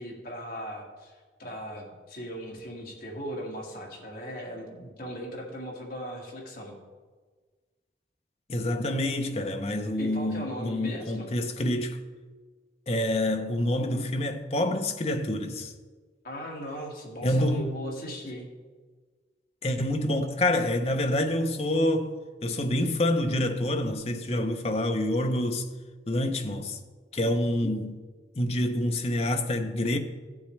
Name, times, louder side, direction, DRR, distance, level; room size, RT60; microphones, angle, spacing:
voice 1, 0.0-6.7 10.0-11.3 16.2-18.5 27.6-27.7, equal, 50° left, 2.0 m, -38 dB
voice 2, 8.5-12.0 12.9-15.7 17.2-17.7 19.6-22.1 22.4-25.7 26.1-26.8 27.1-27.9 28.4-30.0, left 1 dB, 35° left, 0.7 m, -27 dB
15.0 x 7.2 x 3.2 m
head